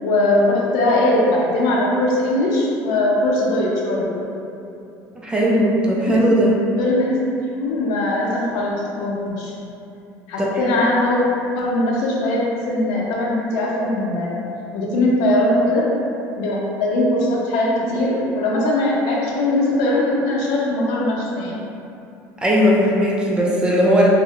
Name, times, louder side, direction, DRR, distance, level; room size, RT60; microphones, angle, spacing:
voice 1, 0.0-4.2 6.1-6.2 6.8-7.2 7.5-9.5 10.3-11.2 11.5-14.3 14.7-15.8 16.4-21.6, left 1 dB, 80° left, -4 dB, 0.5 m, -20 dB
voice 2, 5.2-6.5 10.4-10.5 22.4-24.1, equal, 15° right, -4 dB, 0.3 m, -17 dB
2.4 x 2.1 x 2.8 m, 2.7 s
cardioid pair, 145°, 7 cm